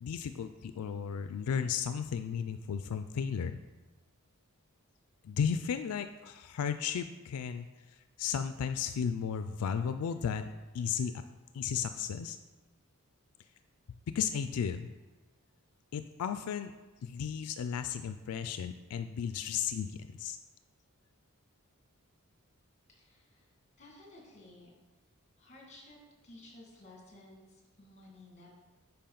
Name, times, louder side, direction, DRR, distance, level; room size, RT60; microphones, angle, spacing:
voice 1, 0.0-3.6 5.2-10.5 10.7-11.1 11.5-12.4 14.1-14.9 15.9-16.7 17.0-20.4, left 7 dB, 85° left, 9 dB, 0.3 m, -34 dB
voice 2, 22.9-24.7 25.4-28.5, left 2 dB, 30° left, -2 dB, 2.0 m, -55 dB
8.5 x 5.5 x 3.9 m, 1.2 s
head